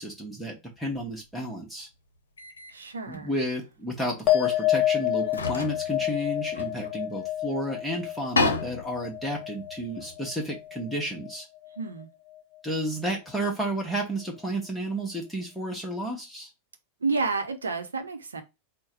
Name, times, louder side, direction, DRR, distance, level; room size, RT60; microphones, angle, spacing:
voice 1, 0.0-1.9 3.1-11.5 12.6-16.5, equal, ahead, 1.1 m, -32 dB
sound 1, 0.9-1.1 2.4-2.7 3.1-3.2 4.5-4.6 5.2-7.4 7.7-7.8 8.1-10.6, left 3 dB, 75° left, 0.7 m, -32 dB
voice 2, 2.7-3.4 11.8-12.1 17.0-18.4, right 4 dB, 75° right, 0.7 m, -30 dB
sound 2, 4.3-11.0 11.2-11.9, left 13 dB, 25° left, 1.1 m, -29 dB
4.6 x 2.2 x 4.4 m
figure-of-eight pair, 90°, 0 cm